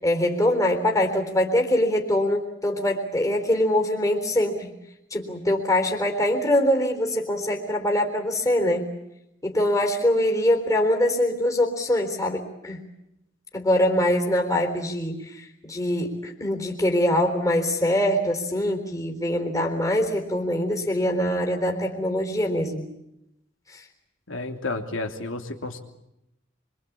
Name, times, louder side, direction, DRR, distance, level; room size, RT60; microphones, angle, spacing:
voice 1, 0.0-4.7 5.1-8.9 9.4-12.8 13.5-22.9 23.7-23.8, left 1 dB, 15° left, 2 dB, 3.8 m, -23 dB
voice 2, 24.3-25.8, left 2 dB, 80° left, 4 dB, 3.1 m, -31 dB
25.5 x 24.5 x 8.6 m, 0.85 s
head